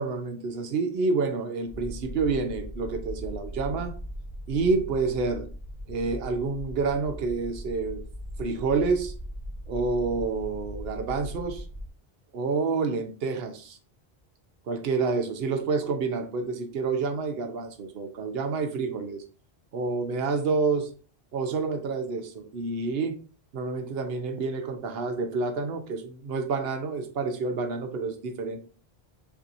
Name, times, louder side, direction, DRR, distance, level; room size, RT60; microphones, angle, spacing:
voice 1, 0.0-3.9 4.5-5.5 5.9-8.0 8.4-9.1 9.7-11.6 12.3-13.8 14.7-19.2 19.7-20.9 21.3-23.2 23.5-28.6, right 4 dB, 65° right, 6 dB, 1.0 m, -28 dB
sound 1, 1.7-11.9, equal, 50° left, 1.0 m, -39 dB
6.9 x 2.8 x 2.6 m, 0.38 s
omnidirectional pair, 1.1 m